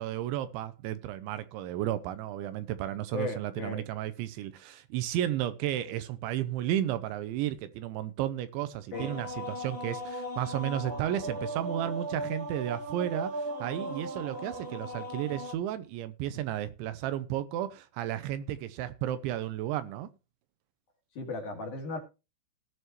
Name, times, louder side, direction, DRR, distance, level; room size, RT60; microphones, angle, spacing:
voice 1, 0.0-20.1, right 12 dB, 80° right, 3.0 m, -33 dB
voice 2, 3.1-3.8 8.9-9.2 21.1-22.0, left 3 dB, 50° left, 3.3 m, -36 dB
sound 1, 8.9-15.5, right 1 dB, 20° right, 1.6 m, -37 dB
17.5 x 6.7 x 3.1 m
omnidirectional pair, 5.6 m